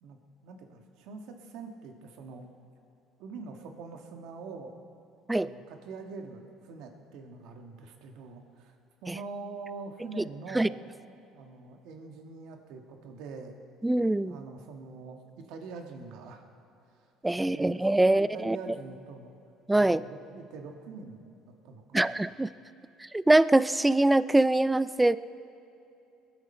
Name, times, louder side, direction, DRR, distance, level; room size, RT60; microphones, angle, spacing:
voice 1, 0.0-2.5 3.2-4.7 5.4-8.7 9.0-10.8 11.3-13.6 14.2-16.4 16.9-17.1 17.5-19.3 19.8-21.3 21.6-22.2, right 4 dB, 75° right, 4 dB, 1.6 m, -44 dB
voice 2, 13.8-14.3 17.2-18.6 19.7-20.0 21.9-22.5 23.1-25.2, right 2 dB, 10° right, 17 dB, 0.3 m, -23 dB
21.5 x 11.0 x 4.3 m, 2.7 s
cardioid pair, 115°, 0 cm